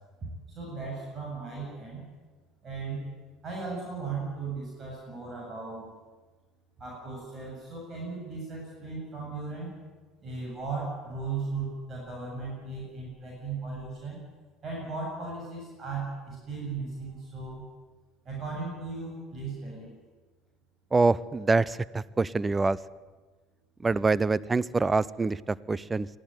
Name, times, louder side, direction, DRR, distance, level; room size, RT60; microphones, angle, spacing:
voice 1, 0.5-2.0 2.6-3.1 3.4-5.9 6.8-9.8 10.2-14.2 14.6-17.7 18.2-19.9, right 4 dB, 35° right, -2 dB, 7.9 m, -36 dB
voice 2, 20.9-22.8 23.8-26.1, right 3 dB, 20° right, 20 dB, 0.7 m, -25 dB
23.5 x 14.5 x 9.4 m, 1.3 s
hypercardioid pair, 65°, 0 cm